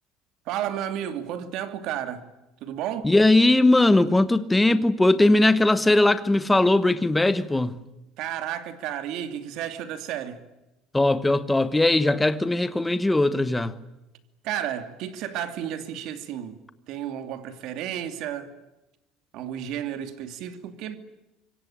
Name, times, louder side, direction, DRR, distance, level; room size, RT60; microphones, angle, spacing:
voice 1, 0.5-2.3 2.6-3.1 8.2-10.4 14.4-16.6 16.9-18.5 19.3-21.0, right 10 dB, 55° right, 2.6 m, -32 dB
voice 2, 3.0-7.8 10.9-13.7, left 2 dB, 5° left, 1.2 m, -19 dB
26.0 x 23.0 x 8.8 m
cardioid pair, 165°, 0 cm